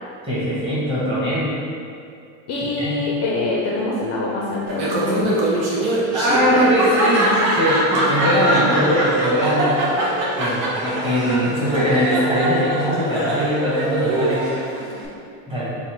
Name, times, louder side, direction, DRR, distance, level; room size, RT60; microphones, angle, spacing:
voice 1, 0.2-1.5 2.8-3.0 6.1-9.7 10.4-14.7 15.5-15.7, equal, 15° right, -10 dB, 1.5 m, -21 dB
voice 2, 2.5-5.4 6.5-6.7 10.4-10.5, left 2 dB, 40° left, -4 dB, 0.5 m, -25 dB
Laughter, 4.7-15.1, right 1 dB, 70° right, 1.1 m, -22 dB
4.0 x 2.7 x 4.4 m, 2.4 s
cardioid pair, 140°, 43 cm